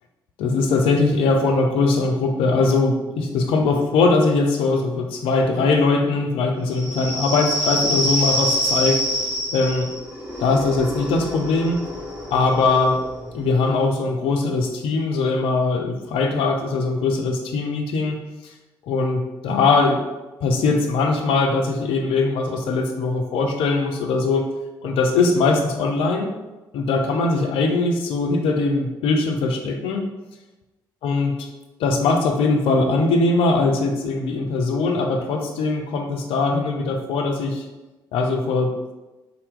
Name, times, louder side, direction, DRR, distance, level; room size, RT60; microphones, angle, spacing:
voice 1, 0.4-9.0 9.5-9.9 10.4-11.8 12.3-13.0 13.3-18.2 18.9-20.0 20.4-24.5 24.8-26.4 26.7-30.1 31.0-31.5 31.8-37.6 38.1-38.7, left 3 dB, 55° left, 3 dB, 0.4 m, -21 dB
sound 1, 6.7-14.0, equal, 15° right, 1.1 m, -26 dB
2.7 x 2.0 x 3.5 m, 1.1 s
figure-of-eight pair, 45°, 11 cm